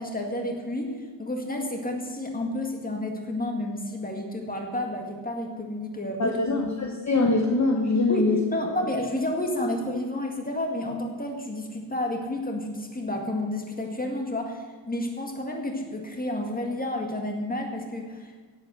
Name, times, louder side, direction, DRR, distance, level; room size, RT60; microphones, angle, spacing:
voice 1, 0.0-6.6 8.1-18.4, left 1 dB, 20° left, 2 dB, 1.9 m, -31 dB
voice 2, 6.2-8.4, left 3 dB, 40° left, 1 dB, 1.2 m, -23 dB
16.5 x 8.2 x 6.3 m, 1.4 s
wide cardioid pair, 165°, 44 cm